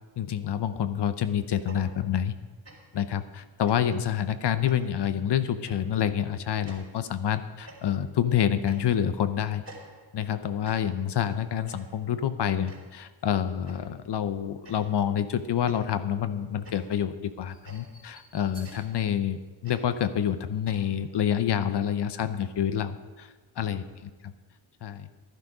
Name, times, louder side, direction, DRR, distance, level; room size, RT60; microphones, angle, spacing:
voice 1, 0.2-2.3 2.9-9.6 10.1-23.8 24.8-25.1, left 9 dB, 55° left, 12 dB, 0.9 m, -28 dB
sound 1, 1.6-2.4 2.6-3.1 3.7-4.1 4.7-5.1 5.7-6.0 6.7-7.1 7.7-8.2 8.6-9.2 9.6-10.3 10.6-11.2 11.7-12.1 12.7-13.1 13.7-14.0 14.6-15.1 15.7-20.8, right 2 dB, 30° right, 3.7 m, -51 dB
12.0 x 11.0 x 4.9 m, 1.3 s
cardioid pair, 85°, 48 cm